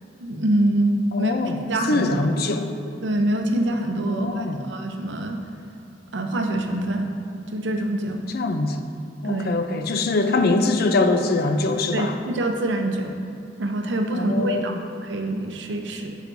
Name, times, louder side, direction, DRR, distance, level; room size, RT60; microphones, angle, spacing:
voice 1, 0.2-1.3 1.7-2.4 3.0-5.4 6.1-7.1 7.5-8.3 9.2-9.5 11.9-13.2 13.6-16.1, right 1 dB, 80° right, 4 dB, 0.7 m, -25 dB
voice 2, 1.1-1.6 1.9-2.7 4.1-4.6 8.3-8.9 9.2-12.1 14.1-14.8, left 2 dB, 55° left, 6 dB, 0.5 m, -23 dB
9.0 x 7.1 x 2.6 m, 2.7 s
head